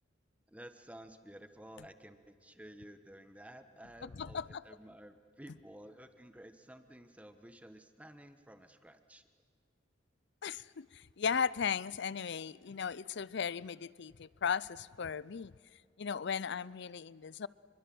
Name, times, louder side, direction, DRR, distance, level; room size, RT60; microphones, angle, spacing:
voice 1, 0.5-9.2, right 1 dB, 5° right, 1.4 m, -53 dB
voice 2, 4.0-4.6 10.4-15.5 16.0-17.5, left 6 dB, 60° left, 0.6 m, -36 dB
27.0 x 22.5 x 7.9 m
head